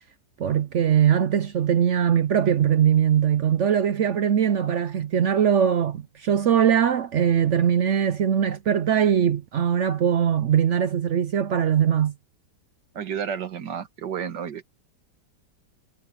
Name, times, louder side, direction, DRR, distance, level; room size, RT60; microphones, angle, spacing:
voice 1, 0.4-12.1, right 8 dB, 65° right, 0.7 m, -21 dB
voice 2, 12.9-14.7, right 8 dB, 85° right, 2.0 m, -31 dB
omnidirectional pair, 1.8 m